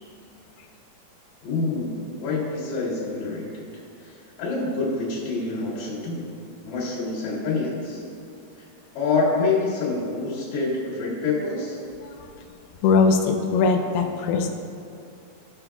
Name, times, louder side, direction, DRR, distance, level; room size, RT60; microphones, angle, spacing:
voice 1, 1.4-6.3 6.6-8.0 8.6-8.7 9.0-11.8, left 3 dB, 70° left, -6 dB, 3.8 m, -27 dB
voice 2, 12.8-14.5, left 4 dB, 85° left, 3 dB, 2.2 m, -20 dB
15.5 x 5.4 x 2.3 m, 2.5 s
omnidirectional pair, 5.0 m